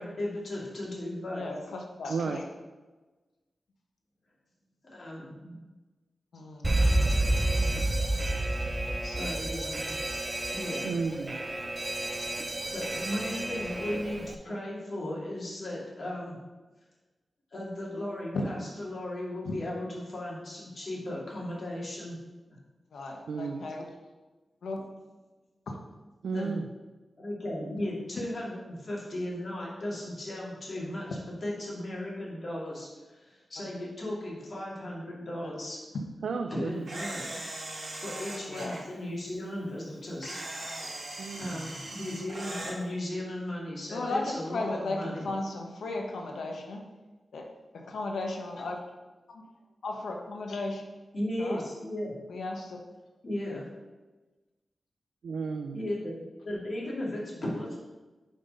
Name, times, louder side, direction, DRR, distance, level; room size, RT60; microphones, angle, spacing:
voice 1, 0.0-1.5 4.9-5.6 9.0-10.0 10.5-10.8 12.7-16.4 17.5-22.2 22.5-22.6 26.3-26.6 27.2-35.8 36.5-37.3 38.0-40.4 41.3-45.3 51.1-52.2 53.2-53.7 55.7-57.8, left 1 dB, 50° left, -5 dB, 2.6 m, -36 dB
voice 2, 1.3-2.4 6.3-6.7 9.8-9.9 18.3-18.4 19.4-19.5 22.9-23.8 24.6-24.8 25.7-25.8 33.7-33.8 35.4-35.5 38.5-38.7 43.9-46.9 47.3-47.4 47.7-48.8 49.3-49.4 49.8-50.8 51.4-51.6 52.3-52.8, left 2 dB, 90° left, 1 dB, 1.1 m, -35 dB
voice 3, 2.1-2.4 10.8-11.4 23.3-23.6 26.2-26.6 36.2-36.8 41.2-41.7 55.2-55.8, right 4 dB, 90° right, 5 dB, 0.4 m, -33 dB
Alarm, 6.6-14.3, right 1 dB, 25° right, 0.6 m, -30 dB
Camera, 36.9-38.8 40.2-42.8, right 1 dB, 55° right, 2.1 m, -39 dB
5.6 x 5.3 x 5.4 m, 1.2 s
wide cardioid pair, 80°, 0 cm